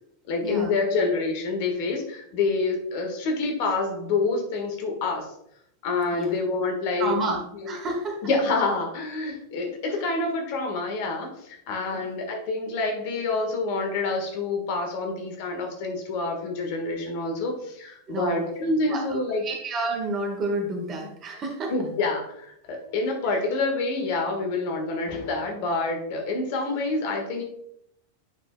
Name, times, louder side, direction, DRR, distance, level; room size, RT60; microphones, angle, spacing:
voice 1, 0.3-5.3 5.8-7.1 7.6-7.7 8.2-19.4 21.7-27.4, left 3 dB, 45° left, 3 dB, 1.5 m, -27 dB
voice 2, 7.0-8.2 11.9-12.1 18.1-18.5 18.9-21.7 23.2-23.4, right 2 dB, 30° right, 2 dB, 1.5 m, -30 dB
8.9 x 5.9 x 2.3 m, 0.73 s
figure-of-eight pair, 90°, 0 cm